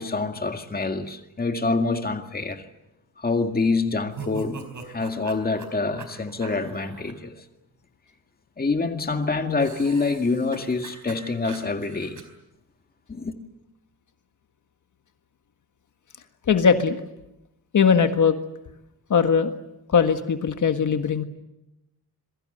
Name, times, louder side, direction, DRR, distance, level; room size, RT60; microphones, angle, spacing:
voice 1, 0.0-2.6 3.2-7.3 8.6-12.2 13.1-13.3, left 3 dB, 25° left, 2.1 m, -26 dB
sound 1, 4.1-7.1 9.6-12.2, right 5 dB, 55° right, 4.4 m, -41 dB
voice 2, 16.5-17.0 17.7-18.4 19.1-19.5 19.9-21.2, left 6 dB, 55° left, 1.7 m, -20 dB
27.0 x 22.5 x 8.0 m
wide cardioid pair, 165°, 37 cm